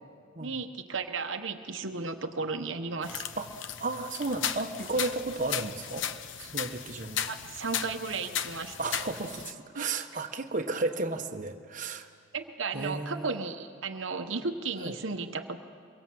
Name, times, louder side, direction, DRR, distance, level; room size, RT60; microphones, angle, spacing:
voice 1, 0.4-3.2 5.6-5.7 7.2-8.8 9.7-10.0 12.3-15.6, right 4 dB, 80° right, 6 dB, 1.1 m, -34 dB
sound 1, 3.0-9.5, left 9 dB, 75° left, 0.9 m, -36 dB
voice 2, 3.8-6.1 6.4-7.3 8.8-12.1 12.7-13.4 14.8-15.0, right 3 dB, 40° right, 4 dB, 1.3 m, -33 dB
24.5 x 22.5 x 7.8 m, 2.3 s
head